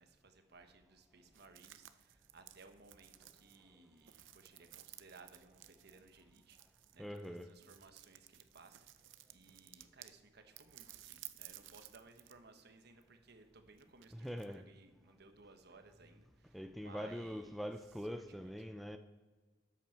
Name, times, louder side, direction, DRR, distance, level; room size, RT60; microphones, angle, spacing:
voice 1, 0.0-17.7 18.3-18.5, right 3 dB, 60° right, 1.1 m, -61 dB
sound 1, 1.3-10.2 10.6-12.4 12.7-14.6, right 14 dB, 80° right, 0.6 m, -57 dB
voice 2, 7.0-7.5 14.1-14.6 16.5-19.0, equal, ahead, 0.4 m, -43 dB
13.0 x 7.5 x 4.6 m
head